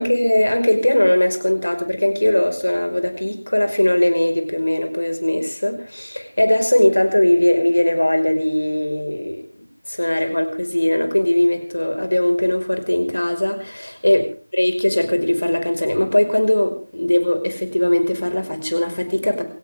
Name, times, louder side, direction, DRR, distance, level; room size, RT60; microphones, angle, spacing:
voice 1, 0.0-14.2 14.5-19.4, left 1 dB, 60° left, 6 dB, 5.3 m, -19 dB
28.0 x 13.5 x 3.6 m, 0.38 s
figure-of-eight pair, 175°, 0 cm